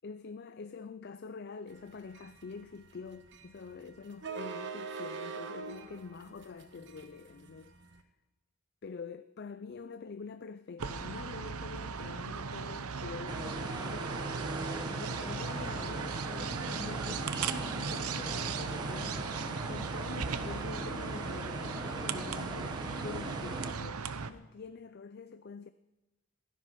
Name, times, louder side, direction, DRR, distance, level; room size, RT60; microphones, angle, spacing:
voice 1, 0.0-8.0 8.8-14.6 15.0-19.3 19.7-25.7, left 4 dB, 45° left, 0.4 m, -46 dB
sound 1, 1.8-8.0, right 5 dB, 50° right, 1.2 m, -43 dB
sound 2, 10.8-24.3, right 5 dB, 80° right, 0.8 m, -37 dB
sound 3, 13.3-23.7, right 1 dB, 20° right, 1.2 m, -40 dB
16.0 x 12.5 x 5.8 m
head